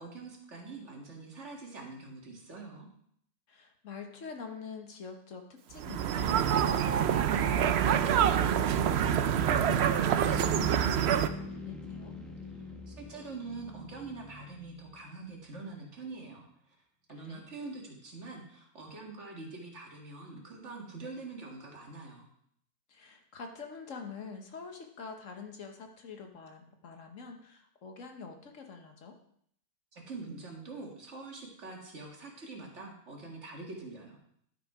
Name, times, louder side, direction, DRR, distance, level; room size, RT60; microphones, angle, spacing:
voice 1, 0.0-2.9 12.9-16.5 17.1-22.3 29.9-34.2, right 3 dB, 45° right, 0 dB, 2.0 m, -44 dB
voice 2, 3.5-12.1 17.3-17.4 22.9-29.2, left 5 dB, 55° left, 5 dB, 1.3 m, -46 dB
sound 1, 5.8-11.3, right 9 dB, 75° right, 0.5 m, -26 dB
sound 2, 6.9-15.5, left 3 dB, ahead, 0.7 m, -45 dB
11.5 x 6.0 x 4.8 m, 0.69 s
omnidirectional pair, 1.7 m